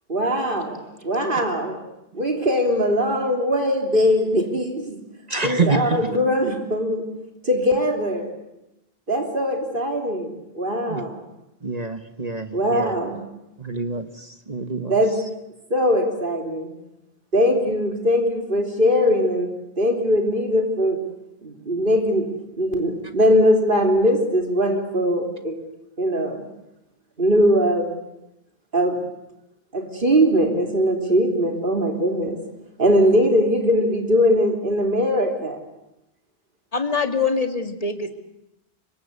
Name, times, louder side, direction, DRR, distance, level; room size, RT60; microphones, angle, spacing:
voice 1, 0.1-1.8 2.1-5.1 5.4-7.0 7.4-8.3 9.1-11.2 12.5-13.2 14.9-15.1 15.7-16.7 17.3-19.5 19.8-21.0 21.4-22.3 22.6-25.6 26.0-26.4 27.2-27.9 28.7-29.0 29.7-32.4 32.8-35.6, equal, 60° right, 3 dB, 3.6 m, -21 dB
voice 2, 5.3-6.1 10.9-11.0 11.6-12.9 13.6-14.9, right 3 dB, 40° right, 9 dB, 1.3 m, -26 dB
voice 3, 36.7-38.1, left 4 dB, 35° left, 7 dB, 2.1 m, -23 dB
26.0 x 23.5 x 8.2 m, 0.89 s
omnidirectional pair, 1.0 m